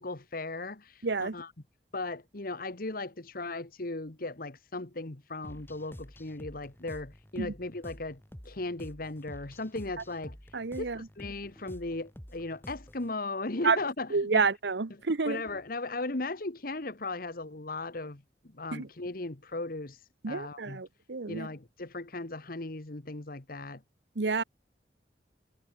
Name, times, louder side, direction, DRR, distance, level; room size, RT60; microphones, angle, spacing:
voice 1, 0.0-1.5 1.9-8.2 8.4-10.4 10.8-14.4 14.9-18.2 18.5-20.0 20.3-20.8 21.3-23.8, left 2 dB, 55° left, 1.5 m, -37 dB
voice 2, 1.0-1.3 7.4-7.5 10.5-11.0 13.6-13.8 14.1-15.4 18.7-18.9 20.2-21.5 24.2-24.4, right 4 dB, 75° right, 0.9 m, -29 dB
sound 1, 5.4-13.1, equal, 15° left, 2.8 m, -49 dB
head